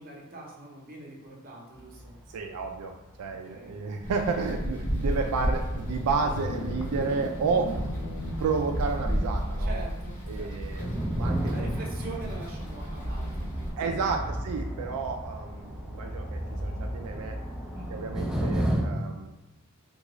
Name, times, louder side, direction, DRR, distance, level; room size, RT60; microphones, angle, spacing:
voice 1, 0.0-2.2 3.3-3.7 9.6-10.7 11.5-14.5 17.7-18.1, right 2 dB, 40° right, -2 dB, 0.7 m, -44 dB
sound 1, 1.7-2.7 3.1-3.3 4.1-4.2 4.8-4.9 5.2-9.5 9.8-18.8, right 1 dB, 5° right, 0.3 m, -34 dB
voice 2, 2.3-2.9 3.2-7.7 8.4-9.9 10.3-11.7 13.8-17.4 17.9-19.3, right 4 dB, 80° right, 3 dB, 0.3 m, -31 dB
sound 2, 4.0-13.7, equal, 35° left, 0.8 m, -32 dB
sound 3, 6.2-8.7, left 3 dB, 70° left, 0.4 m, -37 dB
3.6 x 2.3 x 3.0 m, 0.97 s
head